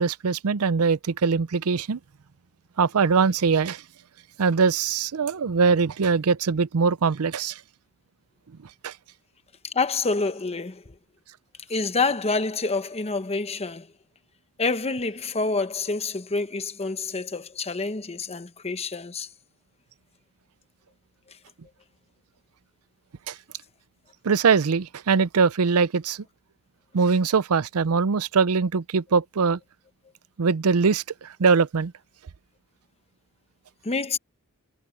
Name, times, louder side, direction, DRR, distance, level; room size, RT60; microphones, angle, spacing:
voice 1, 0.0-2.0 2.8-3.8 4.4-7.6 8.8-8.9 23.3-23.4 24.2-26.2 26.9-29.6 30.4-31.9, right 5 dB, 80° right, 0.6 m, -22 dB
voice 2, 9.6-10.9 11.7-13.9 14.6-19.3 33.8-34.2, left 3 dB, 30° left, 1.0 m, -27 dB
head